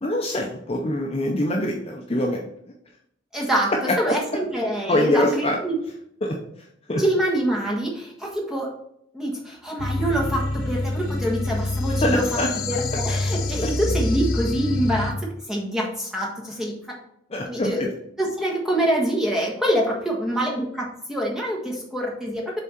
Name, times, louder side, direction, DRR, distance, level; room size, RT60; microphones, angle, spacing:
voice 1, 0.0-2.4 4.1-4.2 4.9-5.6 6.2-6.4 6.9-7.0 12.0-12.5 17.3-17.9, left 1 dB, 30° left, 0 dB, 0.6 m, -23 dB
voice 2, 3.3-5.8 7.0-8.7 9.1-12.4 12.7-16.7 17.4-17.9 18.2-22.6, right 1 dB, ahead, -3 dB, 1.4 m, -25 dB
sound 1, 9.8-15.1, left 2 dB, 85° left, 1.0 m, -26 dB
7.1 x 3.7 x 4.4 m, 0.74 s
head